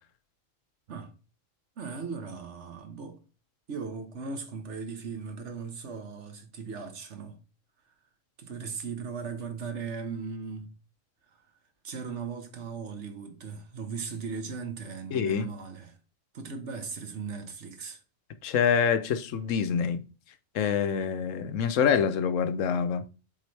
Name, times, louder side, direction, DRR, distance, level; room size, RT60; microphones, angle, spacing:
voice 1, 1.8-3.2 3.7-7.4 8.4-10.7 11.3-11.5 11.8-16.0 16.3-18.0, right 5 dB, 65° right, 1.4 m, -38 dB
voice 2, 15.1-15.5 18.4-20.0 20.5-23.0, left 7 dB, 75° left, 1.0 m, -26 dB
7.6 x 3.8 x 3.2 m
omnidirectional pair, 1.3 m